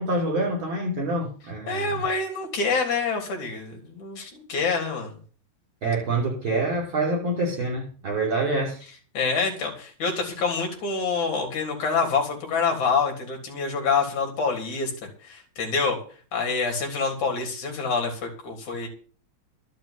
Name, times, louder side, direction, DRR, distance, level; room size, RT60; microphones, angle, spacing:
voice 1, 0.0-2.0 5.8-8.8, right 2 dB, 30° right, -2 dB, 6.6 m, -26 dB
voice 2, 1.7-5.2 9.1-14.9 15.2-16.0 16.3-18.9, left 4 dB, 50° left, 1 dB, 4.8 m, -26 dB
12.0 x 7.4 x 9.8 m, 0.42 s
omnidirectional pair, 4.5 m